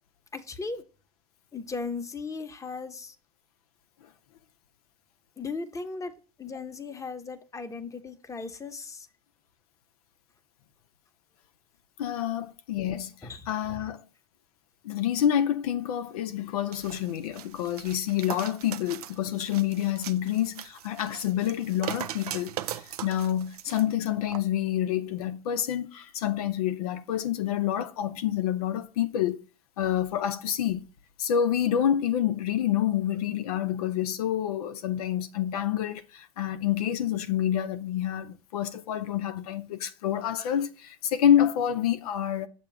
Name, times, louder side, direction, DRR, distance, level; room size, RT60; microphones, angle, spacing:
voice 1, 0.3-0.9 1.5-3.2 5.4-9.1 13.2-13.5, left 4 dB, 15° left, 0.9 m, -37 dB
voice 2, 12.0-13.1 13.5-14.0 14.8-29.4 29.8-30.8 31.2-42.5, left 10 dB, 80° left, 0.7 m, -28 dB
sound 1, 16.7-23.8 24.3-24.4, right 11 dB, 85° right, 0.5 m, -39 dB
6.8 x 2.9 x 5.9 m
hypercardioid pair, 95°, 19 cm